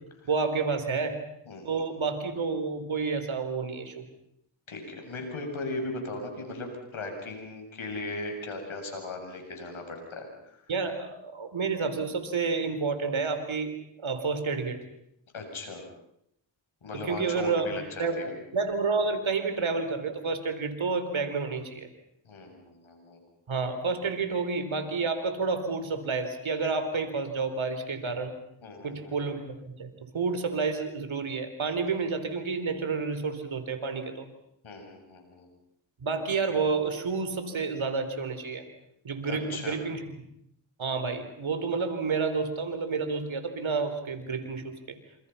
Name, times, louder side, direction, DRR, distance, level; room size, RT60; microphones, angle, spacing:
voice 1, 0.3-1.2 1.6-4.0 10.7-14.8 16.9-18.3 18.5-21.9 23.5-28.3 28.8-34.3 36.0-38.6 39.0-40.1 40.8-45.0, right 4 dB, 75° right, 9 dB, 4.2 m, -30 dB
voice 2, 1.5-1.9 4.7-10.6 15.3-15.8 16.8-18.3 22.3-23.2 28.6-29.2 34.6-35.5 39.3-39.8, left 2 dB, 80° left, 3 dB, 7.6 m, -38 dB
29.5 x 27.5 x 5.8 m, 0.75 s
cardioid pair, 40°, 47 cm